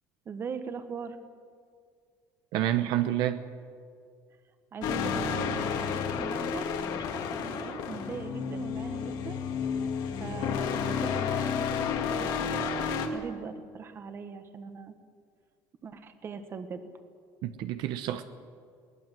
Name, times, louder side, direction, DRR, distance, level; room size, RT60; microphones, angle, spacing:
voice 1, 0.2-1.2 4.7-9.4 10.2-12.7 13.1-14.9 15.8-16.9, right 5 dB, 30° right, 9 dB, 1.5 m, -40 dB
voice 2, 2.5-3.4 17.4-18.2, right 12 dB, 65° right, 9 dB, 1.0 m, -28 dB
sound 1, 4.8-13.1, left 6 dB, 60° left, 2.3 m, -31 dB
22.0 x 18.5 x 7.6 m, 2.1 s
cardioid pair, 155°, 8 cm